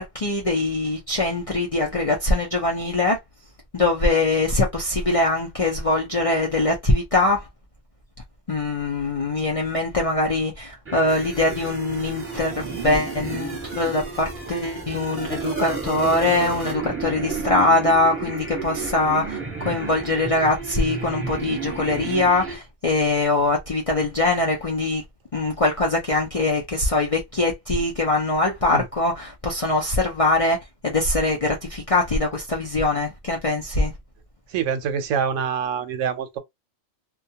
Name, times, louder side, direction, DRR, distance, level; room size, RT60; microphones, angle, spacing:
voice 1, 0.0-3.2 3.7-7.5 8.5-25.0 25.3-30.6 30.8-33.9, left 2 dB, 45° left, 0.4 m, -22 dB
sound 1, 10.8-22.6, right 5 dB, 10° right, 1.0 m, -32 dB
voice 2, 34.5-36.4, right 7 dB, 80° right, 1.0 m, -25 dB
2.3 x 2.3 x 2.7 m
omnidirectional pair, 1.3 m